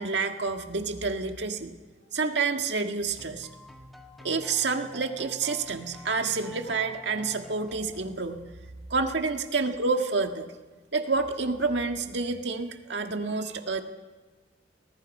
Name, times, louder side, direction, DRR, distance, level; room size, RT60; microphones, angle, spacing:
voice 1, 0.0-1.7 2.1-3.5 4.2-8.4 8.9-10.5 10.9-13.8, right 4 dB, 65° right, 5 dB, 1.8 m, -28 dB
sound 1, 3.2-8.4, left 1 dB, ahead, 1.9 m, -49 dB
24.0 x 20.5 x 5.5 m, 1.3 s
head